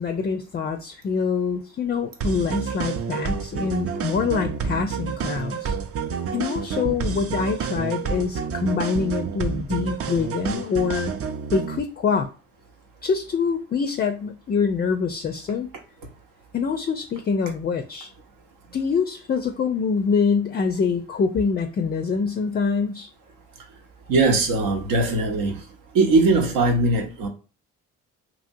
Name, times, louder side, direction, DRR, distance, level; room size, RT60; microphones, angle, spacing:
voice 1, 0.0-5.8 6.3-11.1 11.5-12.3 13.0-15.7 16.5-18.1 18.7-23.1, left 5 dB, 30° left, 0.4 m, -25 dB
sound 1, 2.2-11.8, right 6 dB, 45° right, 0.5 m, -29 dB
voice 2, 24.1-25.6 25.9-27.3, right 3 dB, 75° right, 0.8 m, -20 dB
2.8 x 2.7 x 2.6 m
supercardioid pair, 70°, 34 cm